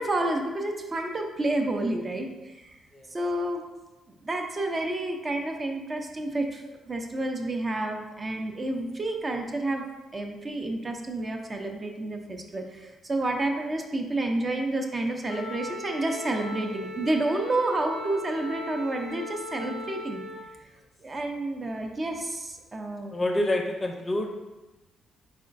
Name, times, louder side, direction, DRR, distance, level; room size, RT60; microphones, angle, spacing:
voice 1, 0.0-2.8 3.1-3.6 4.2-9.8 10.1-20.2 21.0-23.2, right 2 dB, 30° right, 3 dB, 0.5 m, -30 dB
Wind instrument woodwind instrument, 15.3-20.4, left 2 dB, 90° left, 0.6 m, -38 dB
voice 2, 23.1-24.3, left 1 dB, 25° left, 3 dB, 0.5 m, -27 dB
4.1 x 3.8 x 2.5 m, 1.1 s
cardioid pair, 90°, 0 cm